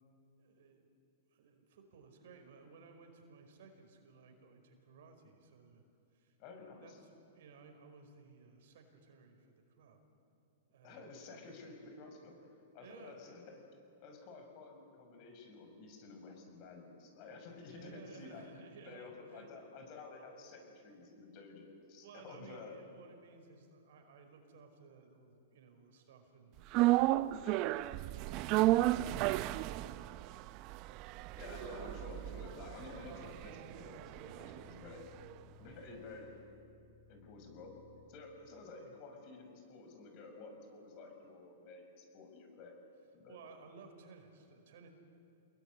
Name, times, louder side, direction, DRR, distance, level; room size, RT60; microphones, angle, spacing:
voice 1, 0.4-0.9 1.3-5.8 6.1-6.3 6.8-9.5 9.8-10.0 10.7-11.4 12.8-13.2 17.5-19.5 22.0-26.6 28.1-28.7 29.2-30.2 34.2-34.7 35.7-35.9 38.8-38.9 43.3-44.9, right 5 dB, 65° right, 5 dB, 5.2 m, -58 dB
voice 2, 6.4-7.0 10.8-12.3 12.7-13.6 14.0-18.5 18.9-22.8 27.4-27.7 31.3-35.1 35.6-36.3 37.1-37.8 38.1-42.8 43.1-43.4, left 3 dB, 45° left, 4 dB, 6.6 m, -51 dB
sound 1, 26.7-35.0 35.3-35.4, right 17 dB, 40° right, 0.6 m, -33 dB
sound 2, 31.8-38.0, left 4 dB, 85° left, 7.6 m, -60 dB
28.5 x 21.5 x 9.9 m, 2.7 s
hypercardioid pair, 130°, 0 cm